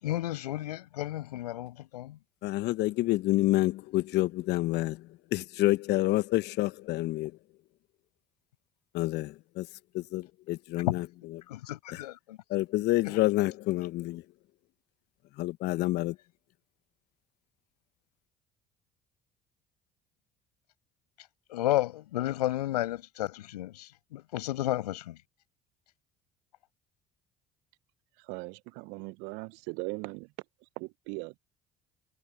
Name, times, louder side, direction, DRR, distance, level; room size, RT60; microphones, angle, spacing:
voice 1, 0.0-2.2 10.9-11.0 11.5-12.4 13.0-13.2 21.5-25.2, left 15 dB, 80° left, 6.3 m, -32 dB
voice 2, 2.4-5.0 5.3-7.3 8.9-9.7 9.9-11.0 12.5-14.2 15.4-16.1, left 17 dB, 60° left, 1.2 m, -28 dB
voice 3, 28.3-30.3 31.1-31.3, right 28 dB, 65° right, 0.8 m, -38 dB
hypercardioid pair, 60°, 20 cm